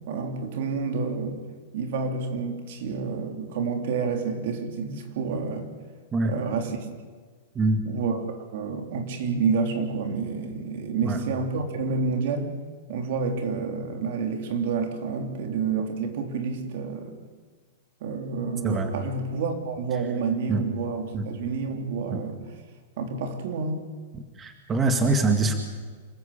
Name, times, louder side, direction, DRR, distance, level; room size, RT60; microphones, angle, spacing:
voice 1, 0.0-1.4 1.7-5.7 6.2-6.8 7.8-12.5 12.9-17.2 18.0-22.4 23.0-23.9, right 5 dB, 60° right, 6 dB, 3.4 m, -29 dB
voice 2, 24.1-25.5, right 2 dB, 15° right, 5 dB, 2.0 m, -24 dB
27.5 x 15.0 x 8.6 m, 1.5 s
hypercardioid pair, 145°, 0 cm